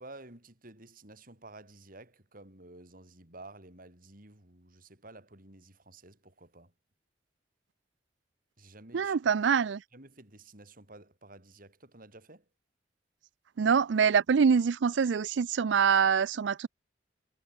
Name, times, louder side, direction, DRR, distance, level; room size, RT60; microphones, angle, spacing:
voice 1, 0.0-6.7 8.6-9.2 9.9-12.5, right 2 dB, 50° right, 5.2 m, -52 dB
voice 2, 8.9-9.8 13.6-16.7, right 6 dB, 70° right, 0.4 m, -25 dB
head